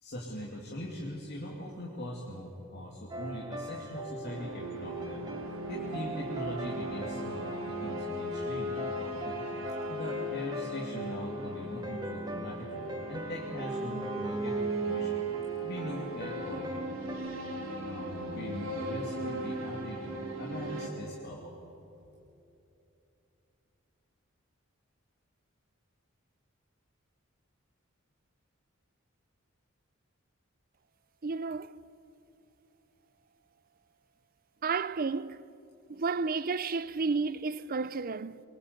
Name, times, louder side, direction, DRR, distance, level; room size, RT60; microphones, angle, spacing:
voice 1, 0.0-5.2 5.7-9.4 9.9-15.2 15.6-16.8 17.8-21.6, left 1 dB, 50° left, 2.8 m, -41 dB
sound 1, 3.1-17.1, right 1 dB, 20° right, 2.2 m, -41 dB
sound 2, 4.2-20.9, right 1 dB, 70° right, 3.1 m, -37 dB
voice 2, 31.2-31.7 34.6-35.4 35.9-38.4, right 4 dB, 45° right, 0.6 m, -31 dB
24.0 x 22.5 x 8.3 m
head